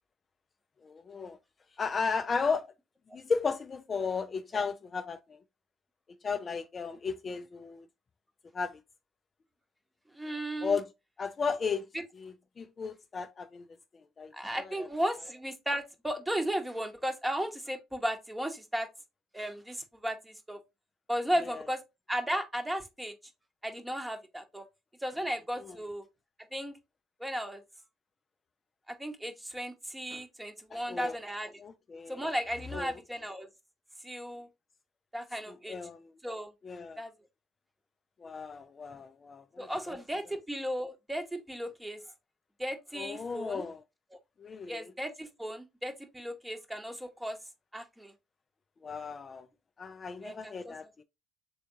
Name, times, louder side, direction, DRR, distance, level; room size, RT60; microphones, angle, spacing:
voice 1, 0.8-1.4 1.8-2.7 3.1-5.4 6.2-7.9 8.5-8.8 10.6-10.9 11.2-11.8 12.2-13.6 14.2-14.3 14.6-14.9 21.5-21.6 25.6-25.8 30.7-31.2 31.6-32.2 32.7-32.9 35.5-36.1 36.6-37.0 38.2-40.0 42.9-43.8 44.4-44.9 48.8-49.5 49.8-50.9, left 5 dB, 35° left, 0.3 m, -35 dB
voice 2, 10.1-10.8 11.9-12.0 14.3-18.9 19.3-20.6 21.1-21.8 22.1-23.1 23.6-24.6 25.0-26.1 26.5-26.8 27.2-27.6 28.9-31.5 32.1-33.5 34.0-34.5 35.1-35.8 36.2-36.5 37.0-37.1 39.6-42.0 42.6-43.6 44.7-47.4 47.7-48.1 50.2-50.7, equal, 10° right, 0.9 m, -35 dB
3.5 x 3.4 x 2.7 m
hypercardioid pair, 70°, 0 cm